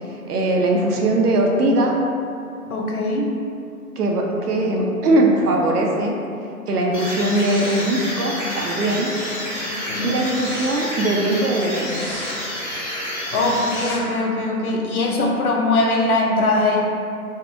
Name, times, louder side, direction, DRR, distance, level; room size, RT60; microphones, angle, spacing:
voice 1, 0.1-1.9 4.0-6.2 6.7-9.1 10.0-12.0, right 1 dB, 85° right, 0 dB, 0.6 m, -20 dB
voice 2, 2.7-3.3 9.7-10.2 13.3-16.8, left 2 dB, 70° left, -1 dB, 0.7 m, -21 dB
sound 1, 6.9-14.4, equal, 50° left, 1.2 m, -29 dB
3.5 x 2.0 x 2.5 m, 2.5 s
figure-of-eight pair, 145°, 45 cm